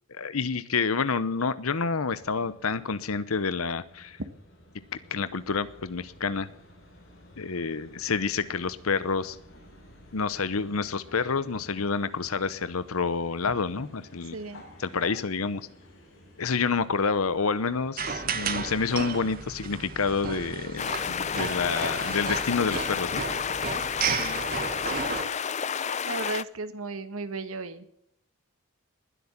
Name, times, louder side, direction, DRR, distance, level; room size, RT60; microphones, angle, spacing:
voice 1, 0.1-4.2 5.1-6.5 7.4-9.4 10.1-14.4 14.8-15.7 16.4-23.2, left 5 dB, 85° left, 15 dB, 0.8 m, -28 dB
sound 1, 2.1-21.1, left 1 dB, 70° left, 7.7 m, -53 dB
voice 2, 14.3-14.6 24.0-24.4 24.9-25.3 26.0-27.8, right 3 dB, 80° right, 11 dB, 1.6 m, -36 dB
sound 2, 18.0-25.2, right 5 dB, 45° right, 1.5 m, -33 dB
sound 3, 20.8-26.4, left 7 dB, 35° left, 0.5 m, -31 dB
20.5 x 8.1 x 7.3 m, 0.75 s
head